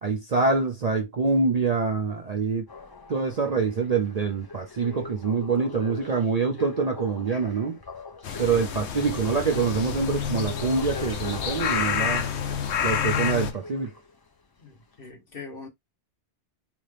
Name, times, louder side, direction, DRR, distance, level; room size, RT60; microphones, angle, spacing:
voice 1, 0.0-2.7 3.1-7.8 8.4-12.3 12.8-13.9, right 4 dB, 45° right, 0.5 m, -25 dB
sound 1, 2.7-14.3 14.9-15.0, left 4 dB, 30° left, 0.5 m, -42 dB
sound 2, 8.2-13.5, left 7 dB, 75° left, 1.0 m, -29 dB
voice 2, 14.6-15.7, left 4 dB, 55° left, 1.3 m, -42 dB
4.1 x 2.3 x 3.3 m
omnidirectional pair, 1.2 m